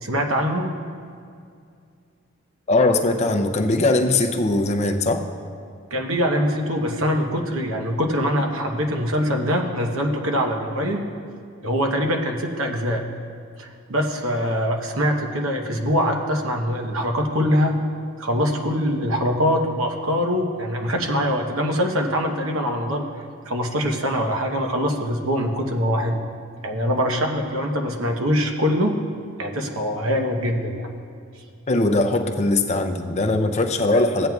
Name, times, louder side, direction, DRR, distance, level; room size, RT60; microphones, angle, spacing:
voice 1, 0.0-0.7 5.9-11.0 11.6-13.0 13.6-17.8 18.2-23.0 23.5-26.2 26.6-28.9 29.4-30.9, equal, 70° right, 2 dB, 1.0 m, -23 dB
voice 2, 2.7-5.2 31.7-34.3, left 2 dB, 30° left, 5 dB, 0.5 m, -20 dB
16.0 x 9.1 x 2.3 m, 2.3 s
head